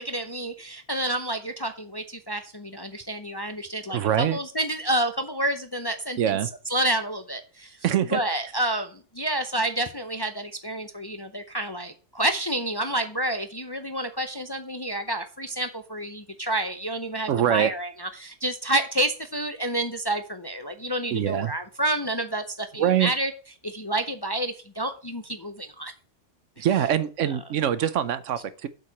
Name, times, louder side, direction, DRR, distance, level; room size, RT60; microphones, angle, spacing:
voice 1, 0.0-6.4 6.7-7.8 8.1-23.3 23.6-25.9 26.6-26.7, right 1 dB, 25° left, 0.5 m, -29 dB
voice 2, 3.9-4.4 6.2-6.5 7.8-8.2 17.3-17.7 21.1-21.5 22.8-23.1 26.6-28.7, right 10 dB, 80° right, 1.1 m, -24 dB
7.8 x 4.7 x 7.0 m
omnidirectional pair, 1.3 m